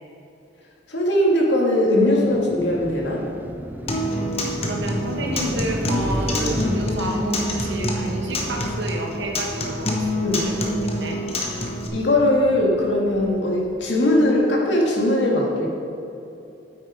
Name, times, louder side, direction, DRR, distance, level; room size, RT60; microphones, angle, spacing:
voice 1, 0.9-3.2 10.2-10.5 11.9-15.7, left 1 dB, 70° left, -2 dB, 2.0 m, -20 dB
Car passing by, 2.0-14.2, right 1 dB, 10° right, 0.4 m, -33 dB
Acoustic guitar, 3.9-11.9, left 1 dB, 30° left, 1.0 m, -26 dB
voice 2, 4.4-11.2, right 1 dB, 70° right, 1 dB, 1.4 m, -30 dB
9.0 x 8.7 x 5.0 m, 2.8 s
head